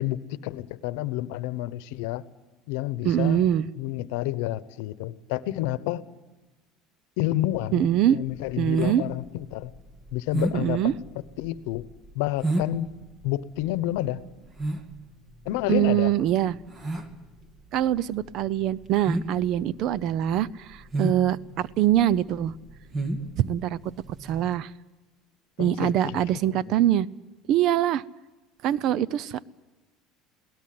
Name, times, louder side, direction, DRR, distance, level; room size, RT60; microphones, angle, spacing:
voice 1, 0.0-2.2 2.7-3.4 3.8-6.0 7.2-9.7 10.1-10.9 11.4-11.9 12.1-12.9 13.2-14.2 15.4-16.1 25.6-26.2 26.5-26.6, left 15 dB, 80° left, 16 dB, 0.9 m, -29 dB
voice 2, 3.0-3.7 7.7-8.2 8.6-9.0 10.5-10.9 15.7-16.6 17.7-22.5 23.4-23.8 24.2-24.7 25.6-27.1 27.5-28.0 28.6-29.4, right 11 dB, 55° right, 20 dB, 0.7 m, -23 dB
sound 1, 8.2-24.5, right 2 dB, 25° right, 2.1 m, -33 dB
22.0 x 18.0 x 7.8 m, 1.1 s
supercardioid pair, 125°, 0 cm